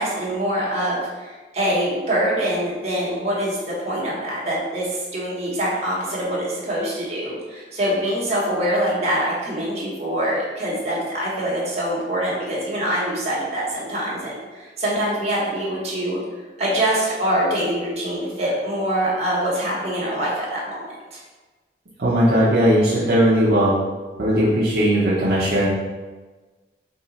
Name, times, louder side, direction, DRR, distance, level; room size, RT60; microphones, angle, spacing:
voice 1, 0.0-16.2 16.6-21.2, right 1 dB, 35° right, -6 dB, 1.2 m, -24 dB
voice 2, 22.0-23.8 24.2-25.7, equal, 60° right, -8 dB, 0.7 m, -18 dB
3.7 x 2.9 x 4.0 m, 1.3 s
head